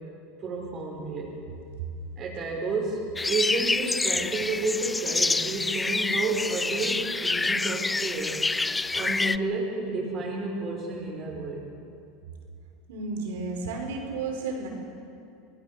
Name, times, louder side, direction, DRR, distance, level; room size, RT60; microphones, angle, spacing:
voice 1, 0.4-1.4 2.1-8.4 8.9-11.6, right 3 dB, 35° right, -3 dB, 4.9 m, -31 dB
sound 1, 3.2-9.4, left 3 dB, 10° left, 0.4 m, -27 dB
voice 2, 12.9-14.7, right 3 dB, 80° right, 1 dB, 5.4 m, -32 dB
24.5 x 18.0 x 6.6 m, 2.5 s
supercardioid pair, 120°, 0 cm